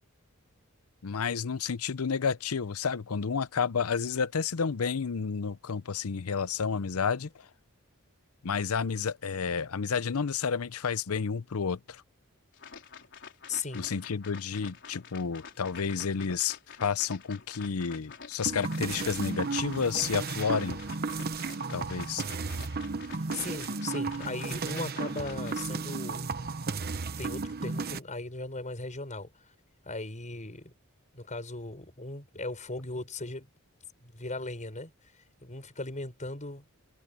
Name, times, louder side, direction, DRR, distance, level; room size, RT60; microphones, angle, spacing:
voice 1, 1.0-7.3 8.4-12.0 13.7-20.8 21.7-22.2, left 6 dB, 75° left, 0.7 m, -30 dB
sound 1, 12.5-25.7, left 6 dB, 55° left, 4.4 m, -48 dB
voice 2, 13.5-13.9 23.3-26.3 27.2-29.3 29.8-30.7 31.1-33.5 34.0-34.9 35.4-36.8, left 3 dB, 35° left, 6.5 m, -38 dB
sound 2, 18.5-28.0, right 4 dB, 45° right, 1.0 m, -34 dB
head